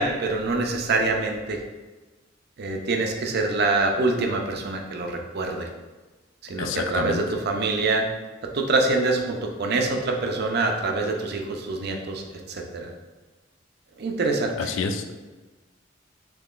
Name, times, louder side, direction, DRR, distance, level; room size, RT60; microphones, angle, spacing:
voice 1, 0.0-1.6 2.6-5.7 6.5-8.1 8.5-12.2 12.5-12.9 14.0-14.5, right 3 dB, 55° right, 3 dB, 0.5 m, -25 dB
voice 2, 6.6-7.2 14.6-15.1, left 4 dB, 70° left, 6 dB, 0.3 m, -28 dB
3.6 x 2.9 x 2.4 m, 1.2 s
head